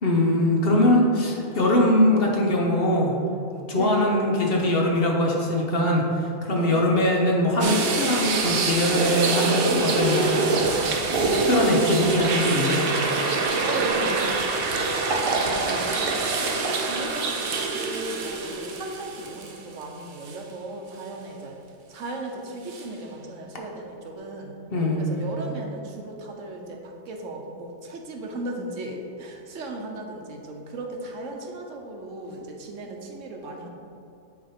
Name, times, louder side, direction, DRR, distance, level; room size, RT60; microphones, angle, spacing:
voice 1, 0.0-3.2 3.7-10.5 10.8-11.2 11.5-12.8 24.7-25.3, left 1 dB, 50° left, -1 dB, 1.1 m, -22 dB
voice 2, 3.8-4.1 6.5-6.8 13.6-16.2 16.6-21.6 21.9-24.6 25.0-33.7, right 2 dB, 70° right, 2 dB, 1.1 m, -36 dB
sound 1, 7.6-19.8 20.2-20.4 22.7-22.8, right 3 dB, 55° right, 0.8 m, -25 dB
9.4 x 3.5 x 4.3 m, 2.6 s
omnidirectional pair, 1.3 m